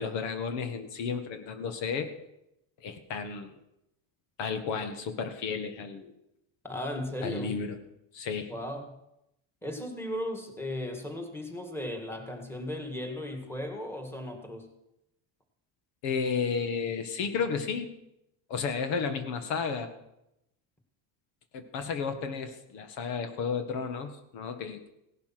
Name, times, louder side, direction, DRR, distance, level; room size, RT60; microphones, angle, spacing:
voice 1, 0.0-2.1 2.8-3.5 4.4-6.1 7.2-7.8 8.1-8.5 16.0-17.9 18.5-19.9 21.5-24.9, left 5 dB, 75° left, 8 dB, 1.9 m, -32 dB
voice 2, 6.6-7.6 8.5-9.0 9.6-14.7, left 1 dB, 5° left, 4 dB, 2.1 m, -36 dB
17.0 x 11.5 x 6.0 m, 0.86 s
cardioid pair, 145°, 43 cm